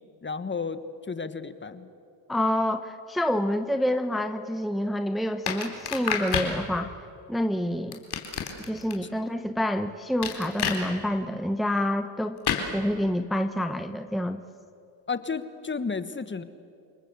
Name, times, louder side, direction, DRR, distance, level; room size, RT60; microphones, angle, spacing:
voice 1, 0.2-0.8 1.1-1.9 15.1-16.4, left 5 dB, 25° left, 12 dB, 1.5 m, -32 dB
voice 2, 2.3-6.9 7.3-8.0 8.7-12.4 12.7-14.4, left 1 dB, ahead, 8 dB, 1.0 m, -27 dB
sound 1, 5.5-6.5 7.9-8.9 10.2-10.8 12.4-12.7, left 7 dB, 55° left, 4.1 m, -28 dB
29.0 x 19.5 x 8.2 m, 2.5 s
supercardioid pair, 80°, 47 cm